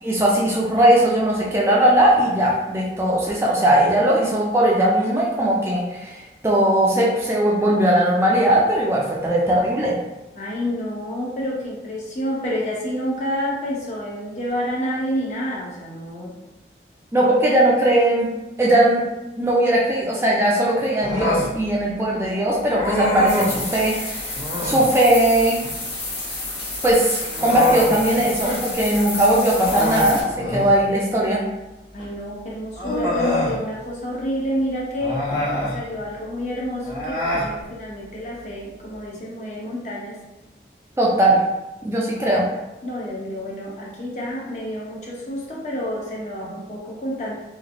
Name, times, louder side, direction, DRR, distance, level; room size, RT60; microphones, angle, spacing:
voice 1, 0.0-10.0 17.1-18.3 18.6-19.0 19.4-25.6 26.8-31.4 41.0-41.4 41.8-42.5, right 1 dB, 15° right, -4 dB, 0.3 m, -19 dB
voice 2, 10.3-16.4 31.9-35.2 35.7-40.2 42.8-47.3, equal, 40° left, -4 dB, 0.7 m, -29 dB
Human voice, 21.0-21.5 22.7-23.6 24.3-24.9 26.8-28.6 28.9-29.1 29.5-30.8 32.0-32.1 32.7-33.6 35.0-35.8 36.8-37.5, left 1 dB, 60° left, 1.4 m, -25 dB
sound 1, 23.3-30.2, left 2 dB, 85° left, 1.0 m, -30 dB
3.1 x 2.4 x 2.5 m, 1.0 s
head